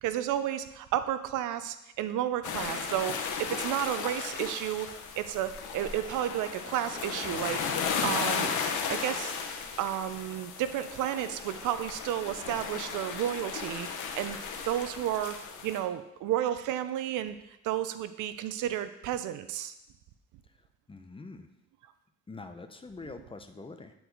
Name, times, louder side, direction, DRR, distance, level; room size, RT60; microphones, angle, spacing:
voice 1, 0.0-4.9 5.2-8.5 8.9-9.4 9.8-13.9 14.1-14.4 14.6-15.4 15.6-17.4 17.6-19.7, right 11 dB, 90° right, 12 dB, 0.6 m, -32 dB
sound 1, 2.4-15.8, left 5 dB, 80° left, 1.0 m, -35 dB
voice 2, 20.9-21.5 22.3-23.9, left 3 dB, 20° left, 7 dB, 0.6 m, -44 dB
9.9 x 4.7 x 3.9 m, 0.86 s
cardioid pair, 90°, 30 cm